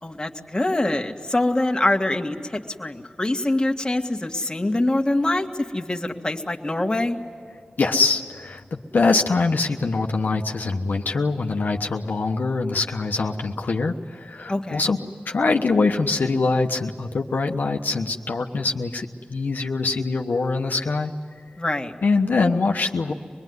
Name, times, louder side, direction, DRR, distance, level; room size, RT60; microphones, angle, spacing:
voice 1, 0.0-7.2 14.5-14.9 21.6-21.9, left 1 dB, 25° left, 3 dB, 1.9 m, -24 dB
voice 2, 7.8-15.0 15.3-21.1 22.0-23.1, left 3 dB, 80° left, 2 dB, 1.2 m, -23 dB
25.5 x 20.5 x 9.5 m, 2.1 s
wide cardioid pair, 55°, 3 cm